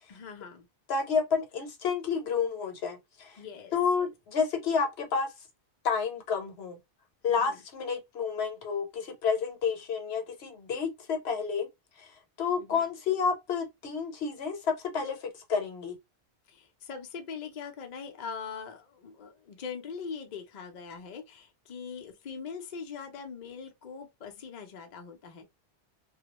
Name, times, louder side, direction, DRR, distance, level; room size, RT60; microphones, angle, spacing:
voice 1, 0.1-0.7 3.4-4.0 7.3-7.6 12.6-12.9 16.5-25.4, left 6 dB, 55° left, 0.6 m, -42 dB
voice 2, 0.9-3.4 3.7-5.3 5.8-6.8 7.2-11.7 12.0-12.1 12.4-16.0, left 5 dB, 70° left, 0.9 m, -30 dB
2.3 x 2.1 x 2.9 m
omnidirectional pair, 1.1 m